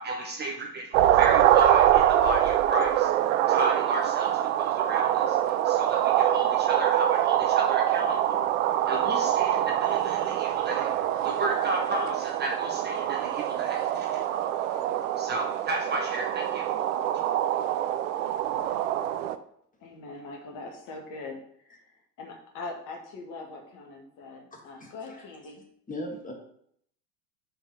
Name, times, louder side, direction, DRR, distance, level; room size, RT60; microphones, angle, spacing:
voice 1, 0.0-3.1 3.5-5.4 5.6-8.4 8.9-10.9 11.2-14.2 15.2-16.7, right 2 dB, 20° right, 1 dB, 1.0 m, -32 dB
sound 1, 0.9-19.4, right 12 dB, 50° right, 0.6 m, -24 dB
voice 2, 19.8-25.6, left 3 dB, 40° left, 2 dB, 1.9 m, -42 dB
voice 3, 24.5-25.3 25.9-26.3, left 1 dB, 15° left, 1 dB, 1.8 m, -39 dB
5.6 x 5.1 x 5.2 m, 0.67 s
figure-of-eight pair, 80°, 49 cm